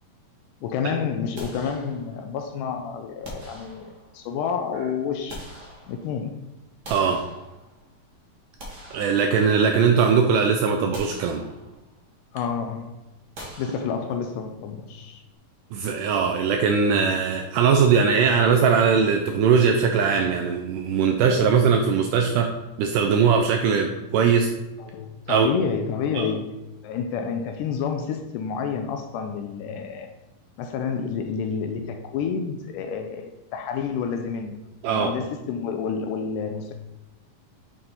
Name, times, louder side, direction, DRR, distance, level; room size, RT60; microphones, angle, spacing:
voice 1, 0.6-5.5 5.9-6.4 12.3-13.0 13.6-15.2 24.8-30.1 30.6-34.6 34.9-36.7, left 6 dB, 80° left, 6 dB, 1.8 m, -29 dB
sound 1, 1.3-2.4 3.2-4.3 4.9-6.3 6.8-7.9 8.4-9.9 10.2-10.4 10.9-12.0 13.3-14.5, right 1 dB, 60° right, 1.0 m, -43 dB
voice 2, 6.9-7.2 8.9-11.4 15.7-24.5 25.3-25.5 26.2-26.3 34.8-35.1, right 6 dB, 80° right, 4 dB, 1.9 m, -20 dB
7.5 x 4.3 x 4.0 m, 1.0 s
omnidirectional pair, 4.1 m